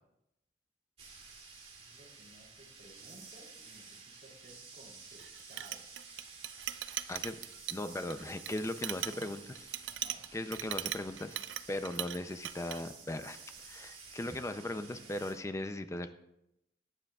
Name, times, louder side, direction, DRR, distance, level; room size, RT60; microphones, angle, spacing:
sound 1, 1.0-15.3, right 4 dB, 35° right, 2.6 m, -52 dB
voice 1, 1.8-5.9 9.1-9.4 9.9-10.3, right 1 dB, 50° right, -3 dB, 3.2 m, -58 dB
Chink clink, 5.2-12.2 12.4-12.8, right 12 dB, 85° right, 0.5 m, -39 dB
voice 2, 7.7-9.4 10.3-11.4 11.7-16.1, left 1 dB, 15° left, 9 dB, 0.5 m, -38 dB
22.0 x 9.3 x 2.4 m, 0.84 s
head